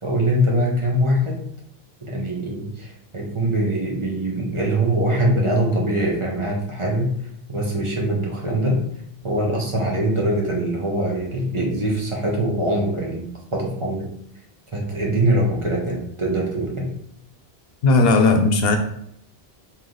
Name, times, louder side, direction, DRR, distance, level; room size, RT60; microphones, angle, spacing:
voice 1, 0.0-1.4 2.0-7.1 7.5-8.8 9.2-14.1 14.7-16.9, right 1 dB, 30° right, -2 dB, 0.9 m, -23 dB
voice 2, 17.8-18.8, left 3 dB, 75° left, 5 dB, 0.8 m, -16 dB
3.2 x 2.9 x 3.8 m, 0.69 s
omnidirectional pair, 1.0 m